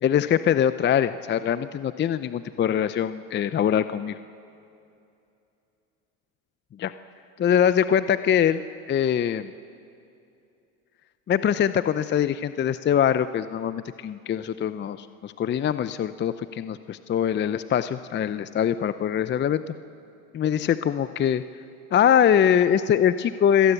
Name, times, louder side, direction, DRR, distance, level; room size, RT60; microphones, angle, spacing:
voice 1, 0.0-4.2 6.8-6.9 7.4-8.6 8.9-9.5 11.3-19.6 20.3-21.4 21.9-23.7, left 9 dB, 25° left, 13 dB, 0.6 m, -23 dB
25.5 x 17.5 x 8.2 m, 2.6 s
hypercardioid pair, 90°, 41 cm